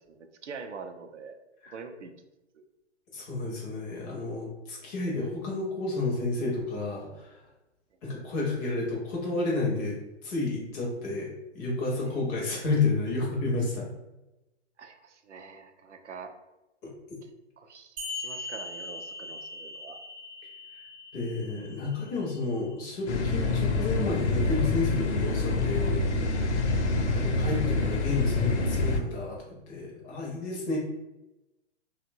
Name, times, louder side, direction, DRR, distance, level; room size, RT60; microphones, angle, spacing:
voice 1, 0.1-1.4 1.7-2.1 2.5-2.6 12.1-12.2 14.8-16.3 17.6-20.0 26.7-27.0, right 5 dB, 85° right, 6 dB, 0.5 m, -45 dB
voice 2, 3.1-7.4 8.0-10.0 10.2-13.9 21.1-26.0 27.1-30.8, left 3 dB, 20° left, -3 dB, 0.4 m, -31 dB
sound 1, 18.0-23.0, left 2 dB, 50° right, 0.7 m, -41 dB
sound 2, 23.1-29.0, left 3 dB, 70° left, 0.6 m, -26 dB
2.8 x 2.1 x 2.6 m, 0.98 s
figure-of-eight pair, 120°, 35 cm